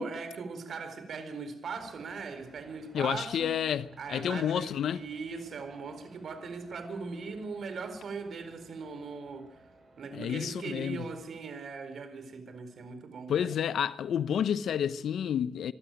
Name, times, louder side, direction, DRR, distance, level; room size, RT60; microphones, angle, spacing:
voice 1, 0.0-3.5 4.0-9.6 10.0-13.5, right 4 dB, 55° right, 4.3 m, -40 dB
sound 1, 1.7-11.5, right 2 dB, 40° right, 7.5 m, -59 dB
voice 2, 2.9-5.0 10.1-11.1 13.3-15.7, left 9 dB, 65° left, 0.8 m, -30 dB
25.5 x 13.0 x 9.2 m
cardioid pair, 85°, 0 cm